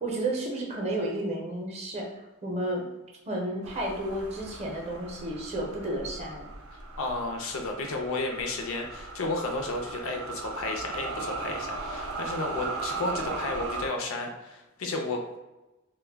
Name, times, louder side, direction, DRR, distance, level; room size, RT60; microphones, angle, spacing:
voice 1, 0.0-2.9 3.3-6.5, right 1 dB, 30° right, -1 dB, 0.5 m, -32 dB
sound 1, 3.6-13.9, right 3 dB, 85° right, 0.5 m, -37 dB
voice 2, 7.0-15.4, left 2 dB, 70° left, 2 dB, 0.5 m, -32 dB
2.2 x 2.1 x 3.3 m, 1.0 s
head